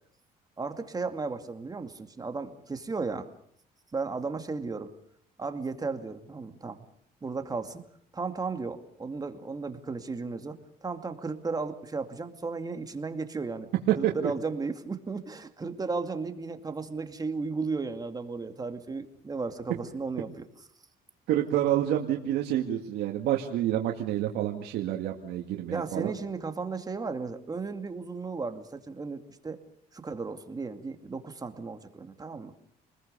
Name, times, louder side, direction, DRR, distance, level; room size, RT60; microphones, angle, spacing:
voice 1, 0.6-3.3 3.9-4.9 5.4-6.9 7.2-7.8 8.1-13.7 14.0-20.4 25.7-29.6 29.9-32.5, right 4 dB, 20° right, 7 dB, 2.4 m, -35 dB
voice 2, 21.3-26.1, right 12 dB, 80° right, 1 dB, 2.2 m, -28 dB
28.5 x 21.0 x 6.9 m, 0.65 s
cardioid pair, 110°, 17 cm